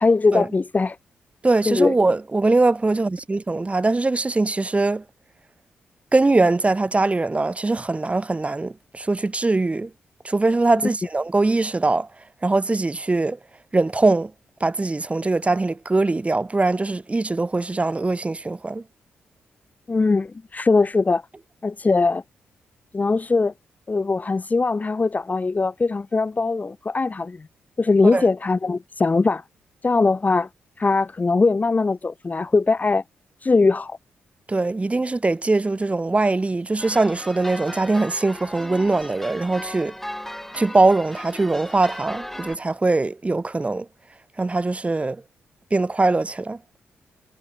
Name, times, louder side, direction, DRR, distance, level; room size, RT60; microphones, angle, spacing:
voice 1, 0.0-1.0 1.7-1.9 19.9-21.2 21.6-22.2 22.9-23.5 23.9-27.5 27.8-29.4 29.8-30.5 30.8-33.0 33.4-34.0, left 3 dB, 35° left, 1.1 m, -20 dB
voice 2, 1.4-5.0 6.1-9.9 10.2-12.1 12.4-13.4 13.7-14.3 14.6-18.8 28.1-28.2 34.5-39.9 40.5-43.9 44.4-45.2 45.7-46.6, right 3 dB, 25° right, 1.2 m, -21 dB
sound 1, 36.8-42.6, equal, 5° left, 4.9 m, -36 dB
supercardioid pair, 45°, 5 cm